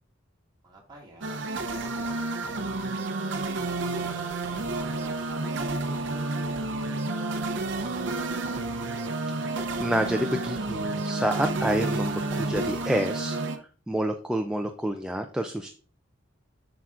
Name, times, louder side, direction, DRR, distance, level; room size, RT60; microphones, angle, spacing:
voice 1, 0.6-3.1 3.4-4.3 4.8-8.5, right 1 dB, 20° right, -3 dB, 2.0 m, -51 dB
sound 1, 1.2-13.6, right 2 dB, 65° right, 0.7 m, -30 dB
voice 2, 9.8-13.4 13.9-15.7, right 1 dB, 5° right, 4 dB, 0.4 m, -28 dB
7.6 x 5.9 x 2.5 m, 0.39 s
head